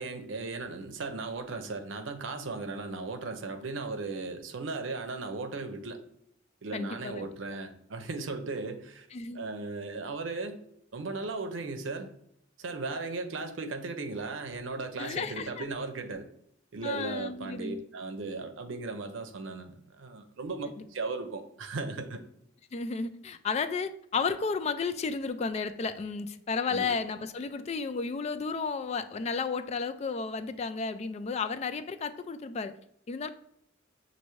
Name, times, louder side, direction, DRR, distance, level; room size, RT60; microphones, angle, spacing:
voice 1, 0.0-6.0 6.6-9.1 9.3-10.6 10.9-12.1 12.6-16.3 16.7-22.2 26.7-26.9, right 3 dB, 90° right, 0.6 m, -36 dB
voice 2, 6.7-7.3 9.1-9.4 15.0-15.6 16.8-17.8 20.8-20.9 22.7-32.7 33.1-33.3, left 5 dB, 35° left, 0.3 m, -33 dB
6.6 x 2.6 x 3.0 m
head